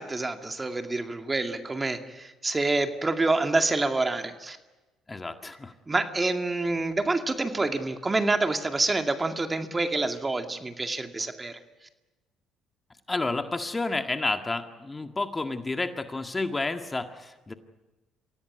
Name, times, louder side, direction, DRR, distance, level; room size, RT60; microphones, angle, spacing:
voice 1, 0.0-4.6 5.9-11.6, right 2 dB, 25° right, 6 dB, 2.2 m, -27 dB
voice 2, 5.1-5.7 13.1-17.5, left 3 dB, 20° left, 7 dB, 1.8 m, -30 dB
25.0 x 17.0 x 9.6 m, 1.1 s
hypercardioid pair, 65°, 0 cm